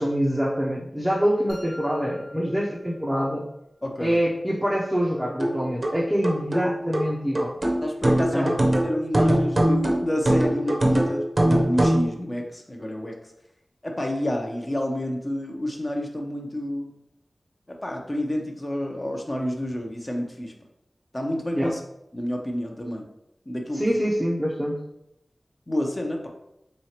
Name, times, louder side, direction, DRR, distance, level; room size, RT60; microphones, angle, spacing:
voice 1, 0.0-3.5 4.0-7.5 8.3-8.5 21.5-21.7 23.7-24.8, equal, 5° right, -4 dB, 0.6 m, -25 dB
sound 1, 1.5-3.5, left 1 dB, 70° left, 0.8 m, -47 dB
voice 2, 3.8-4.2 7.8-13.1 13.8-17.0 17.7-20.5 21.1-21.8 22.1-23.1 23.5-24.0 25.7-26.3, left 1 dB, 30° left, 1 dB, 0.7 m, -29 dB
sound 2, 5.4-12.1, right 1 dB, 50° right, 0.6 m, -22 dB
3.9 x 3.1 x 2.8 m, 0.82 s
wide cardioid pair, 70°, 0 cm